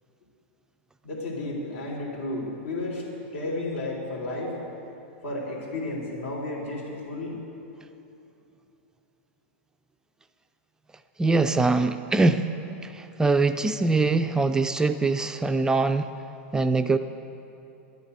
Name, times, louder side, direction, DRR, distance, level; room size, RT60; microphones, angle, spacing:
voice 1, 1.0-3.0 3.3-4.6 5.2-7.4, left 2 dB, 75° left, -1 dB, 3.8 m, -32 dB
voice 2, 11.2-12.5 12.8-16.1 16.5-17.0, right 3 dB, 10° right, 8 dB, 0.3 m, -23 dB
11.0 x 9.7 x 8.2 m, 2.9 s
supercardioid pair, 140°, 7 cm